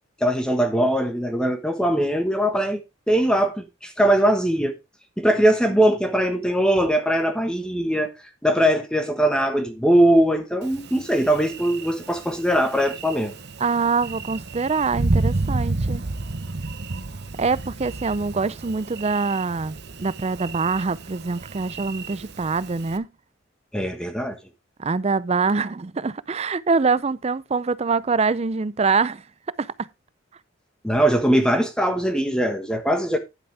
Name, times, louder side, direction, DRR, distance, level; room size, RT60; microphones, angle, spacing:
voice 1, 0.2-4.8 5.2-8.1 8.4-13.3 23.7-24.4 30.8-33.2, right 1 dB, 5° left, 1.2 m, -21 dB
Thunder, 10.6-23.0, right 2 dB, 55° right, 1.0 m, -31 dB
voice 2, 13.6-16.0 17.4-23.1 24.8-29.2 29.6-29.9, right 4 dB, 30° right, 0.5 m, -24 dB
10.5 x 9.2 x 3.4 m
head